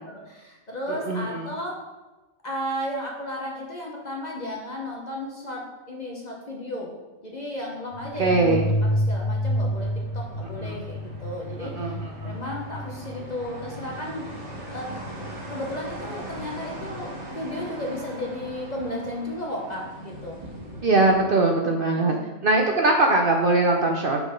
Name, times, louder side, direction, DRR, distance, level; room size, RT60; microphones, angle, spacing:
voice 1, 0.1-1.8 2.4-6.9 7.2-11.9 12.2-14.3 14.7-15.0 15.5-20.4 22.0-22.3, equal, 35° left, -2 dB, 0.8 m, -34 dB
voice 2, 1.1-1.4 8.2-8.7 10.6-10.8 11.6-12.4 20.8-22.1 22.4-24.2, right 2 dB, 65° right, 2 dB, 0.5 m, -21 dB
sound 1, 7.7-21.2, right 1 dB, 30° right, 1.5 m, -40 dB
sound 2, 7.9-16.3, equal, 80° left, 2.0 m, -30 dB
6.0 x 3.8 x 5.1 m, 1.1 s
omnidirectional pair, 1.5 m